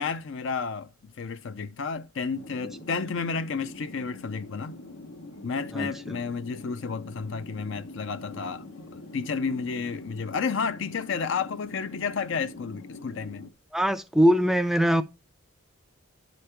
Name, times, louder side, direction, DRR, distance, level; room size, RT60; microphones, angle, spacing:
voice 1, 0.0-4.8 5.4-13.5, left 5 dB, 60° left, 0.4 m, -31 dB
sound 1, 2.3-13.5, left 2 dB, 80° left, 1.0 m, -44 dB
voice 2, 5.7-6.2 13.7-15.0, equal, ahead, 0.4 m, -22 dB
11.0 x 5.2 x 4.4 m
head